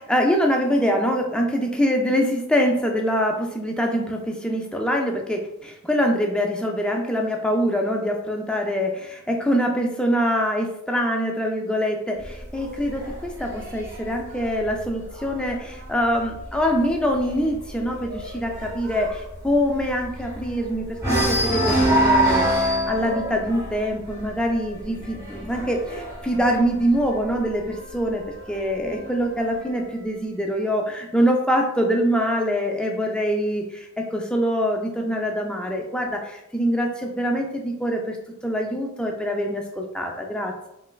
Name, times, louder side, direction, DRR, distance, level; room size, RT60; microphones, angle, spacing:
voice 1, 0.0-38.2 38.4-40.7, equal, 5° left, 1 dB, 0.3 m, -24 dB
sound 1, 12.2-15.8 16.2-16.6 16.8-16.9 17.3-20.6 21.0-27.5 28.4-29.4, right 1 dB, 15° right, 0.7 m, -25 dB
3.2 x 3.2 x 2.2 m, 0.83 s
head